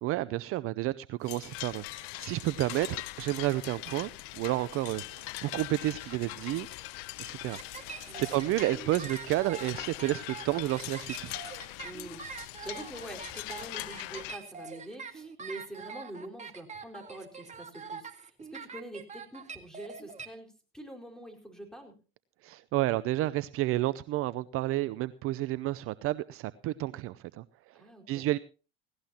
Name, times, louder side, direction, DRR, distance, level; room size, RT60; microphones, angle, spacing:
voice 1, 0.0-6.7 7.2-11.3 22.4-27.8 28.1-28.4, right 16 dB, 50° right, 16 dB, 0.6 m, -31 dB
sound 1, 1.2-14.4, left 21 dB, 65° left, 0.7 m, -42 dB
sound 2, 7.5-20.3, right 5 dB, 25° right, 2.0 m, -44 dB
voice 2, 8.0-8.4 11.8-22.0 27.7-28.3, right 1 dB, ahead, 3 dB, 4.7 m, -45 dB
18.0 x 17.5 x 2.9 m, 0.35 s
hypercardioid pair, 90°, 29 cm